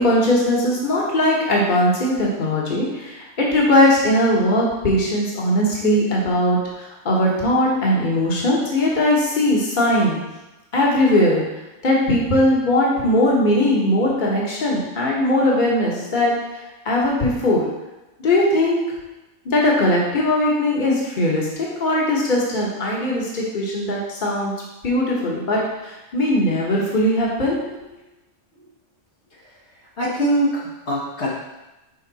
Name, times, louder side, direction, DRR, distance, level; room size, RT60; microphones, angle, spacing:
voice 1, 0.0-10.2 10.7-11.4 11.8-16.3 16.8-17.6 18.2-18.8 19.4-24.5 24.8-27.6, left 1 dB, 40° left, -4 dB, 1.4 m, -19 dB
voice 2, 29.3-31.3, right 1 dB, 65° left, -5 dB, 1.4 m, -24 dB
5.5 x 5.1 x 4.1 m, 1.0 s
omnidirectional pair, 1.3 m